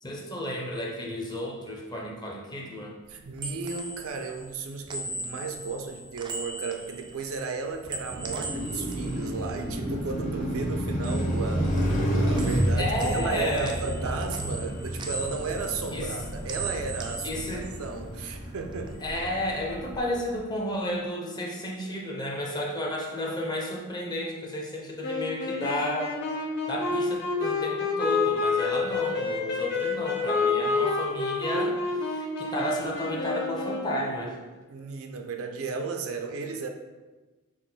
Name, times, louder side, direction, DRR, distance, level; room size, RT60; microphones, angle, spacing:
voice 1, 0.0-3.0 12.8-13.8 15.9-16.1 17.2-17.7 19.0-26.2 26.7-34.4, left 1 dB, 20° left, -1 dB, 0.7 m, -32 dB
sound 1, 3.1-10.4 10.7-12.1 12.4-18.4 18.7-20.0, right 3 dB, 20° right, 0.3 m, -40 dB
voice 2, 3.1-19.0 28.7-29.0 34.7-36.7, right 4 dB, 90° right, 4 dB, 0.5 m, -34 dB
Car passing by, 7.9-20.2, equal, 40° left, 1.1 m, -30 dB
sound 2, 25.0-34.2, left 4 dB, 55° left, 0.8 m, -28 dB
6.1 x 2.1 x 3.8 m, 1.2 s
head